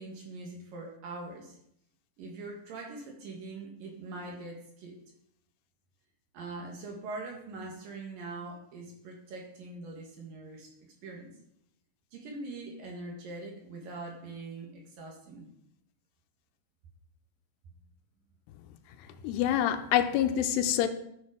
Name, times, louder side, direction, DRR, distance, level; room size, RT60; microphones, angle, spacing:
voice 1, 0.0-1.6 2.2-5.0 6.3-11.3 12.1-15.5, right 2 dB, 60° right, 3.1 m, -42 dB
voice 2, 19.2-20.9, left 11 dB, 85° left, 2.6 m, -26 dB
12.5 x 7.2 x 5.1 m
omnidirectional pair, 5.0 m